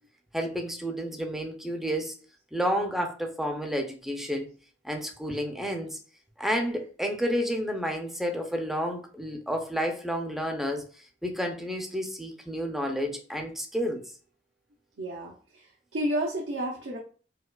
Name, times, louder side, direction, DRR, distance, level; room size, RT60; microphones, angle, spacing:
voice 1, 0.3-2.1 2.5-4.5 4.8-6.0 6.4-10.8 11.2-14.0, equal, ahead, 0.5 m, -30 dB
voice 2, 15.0-17.0, right 1 dB, 75° right, 0.6 m, -31 dB
4.6 x 2.3 x 2.3 m
head